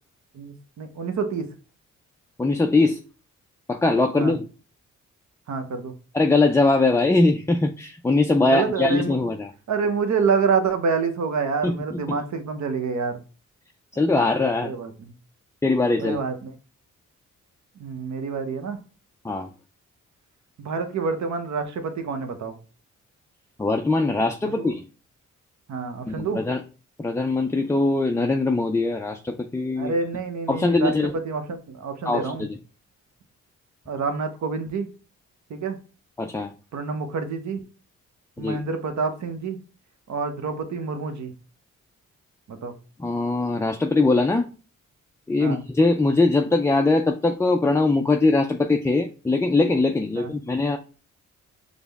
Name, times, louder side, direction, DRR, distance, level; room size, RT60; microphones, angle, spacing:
voice 1, 0.3-1.5 4.2-4.3 5.5-5.9 8.5-9.2 9.7-13.2 14.1-14.9 16.0-16.5 17.8-18.8 20.6-22.6 24.6-24.7 25.7-26.4 29.8-32.5 33.9-34.9 35.5-35.8 36.7-37.6 38.4-39.6 40.1-41.3 42.5-42.7 45.4-45.6 50.2-50.3, right 5 dB, 60° right, 7 dB, 0.8 m, -27 dB
voice 2, 2.4-3.0 3.7-4.4 6.1-9.5 11.6-12.0 13.9-14.7 15.6-16.2 19.2-19.5 23.6-24.8 26.1-26.6 27.0-29.9 30.5-31.1 32.1-32.6 36.2-36.5 38.4-38.6 43.0-44.5 45.3-50.8, left 3 dB, 10° left, 4 dB, 0.3 m, -21 dB
5.0 x 2.1 x 3.4 m, 0.35 s
supercardioid pair, 50°, 33 cm